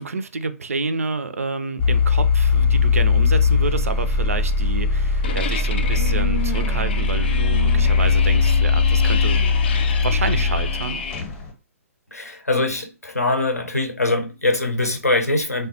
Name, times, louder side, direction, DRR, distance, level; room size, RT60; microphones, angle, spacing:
voice 1, 0.0-9.4 10.0-11.0, right 4 dB, 65° right, 0.4 m, -28 dB
sound 1, 1.8-11.5, left 4 dB, 20° left, 0.7 m, -19 dB
sound 2, 5.2-11.2, left 7 dB, 45° left, 0.3 m, -31 dB
voice 2, 12.1-15.7, left 2 dB, 85° left, 0.6 m, -22 dB
3.3 x 2.2 x 2.7 m
figure-of-eight pair, 125°, 8 cm